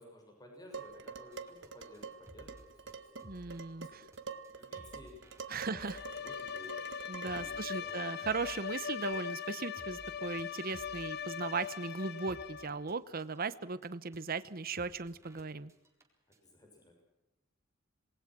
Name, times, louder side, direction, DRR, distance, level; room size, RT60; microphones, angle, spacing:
voice 1, 0.0-3.3 3.8-4.0 4.5-5.1 5.5-7.0 7.4-8.0 16.4-17.0, left 1 dB, 20° left, 1 dB, 6.5 m, -55 dB
Dishes pots and pans, 0.7-7.6, right 5 dB, 60° right, 1.6 m, -47 dB
sound 1, 1.3-12.9 13.2-13.5 13.8-13.9 14.1-14.2 14.4-14.5 14.8-15.4 15.7-16.0 16.3-16.4, equal, 15° right, 4.1 m, -58 dB
voice 2, 3.2-4.0 5.5-6.0 7.1-15.7, right 4 dB, 45° right, 15 dB, 0.9 m, -37 dB
Bowed string instrument, 5.7-12.8, left 8 dB, 50° left, 0.9 m, -41 dB
27.0 x 20.5 x 6.1 m, 0.94 s
head